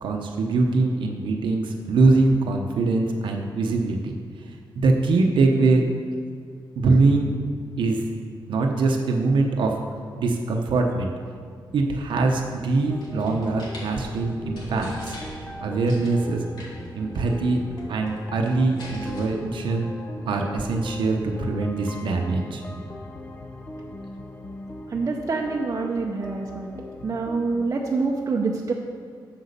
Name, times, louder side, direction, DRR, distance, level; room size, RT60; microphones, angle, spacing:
voice 1, 0.0-4.1 4.8-5.9 6.8-7.3 7.8-8.0 8.5-9.8 10.2-11.1 11.7-15.2 15.6-16.4 16.9-17.6 17.9-19.9 20.3-22.6, right 3 dB, 75° right, 2 dB, 0.8 m, -22 dB
sound 1, 12.8-13.9 14.3-14.4 14.6-15.5 15.9-16.2 16.6-16.9 17.1-17.3 17.6-18.2 18.4-19.3, left 1 dB, 60° left, 2.5 m, -41 dB
sound 2, 12.9-27.7, left 2 dB, 20° left, 0.5 m, -39 dB
voice 2, 24.9-26.8 27.0-28.7, right 4 dB, 35° right, -1 dB, 0.7 m, -26 dB
8.2 x 6.2 x 6.7 m, 2.1 s
wide cardioid pair, 135°, 8 cm